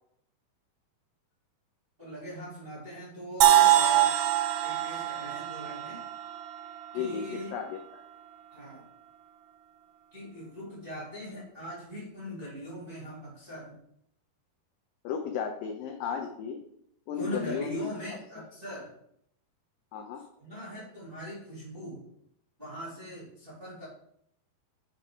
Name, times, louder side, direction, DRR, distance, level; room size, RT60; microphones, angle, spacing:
voice 1, 2.0-4.1 4.6-6.0 6.9-7.5 8.5-8.8 10.1-13.7 17.2-18.9 20.4-22.0 22.6-23.9, equal, 20° right, -7 dB, 1.4 m, -40 dB
sound 1, 3.4-7.3, right 12 dB, 85° right, 2.7 m, -24 dB
voice 2, 6.9-8.0 15.0-16.6 17.1-17.9 18.4-18.5 19.9-20.2, left 7 dB, 85° left, 4 dB, 1.9 m, -34 dB
7.2 x 5.3 x 4.8 m, 0.71 s
omnidirectional pair, 4.8 m